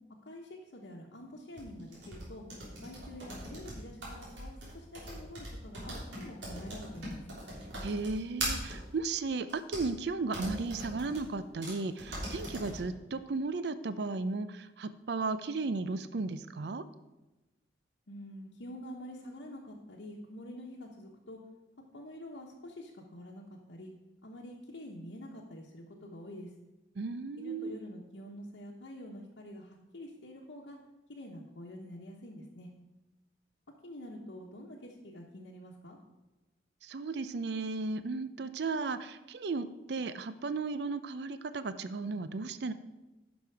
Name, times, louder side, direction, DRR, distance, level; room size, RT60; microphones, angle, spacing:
voice 1, 0.2-2.4 2.8-7.2 18.1-21.4 21.9-23.9 24.2-26.5 27.4-30.8 31.1-32.7 33.8-36.0, left 1 dB, 80° left, -4 dB, 1.1 m, -47 dB
sound 1, 1.6-8.8 9.5-9.9 10.3-11.2 11.6-11.7 12.0-12.8, right 1 dB, 80° right, 3.5 m, -40 dB
voice 2, 7.8-16.8 27.0-27.8 36.8-42.7, right 3 dB, 60° right, 12 dB, 0.5 m, -35 dB
10.5 x 6.1 x 4.8 m, 1.1 s
head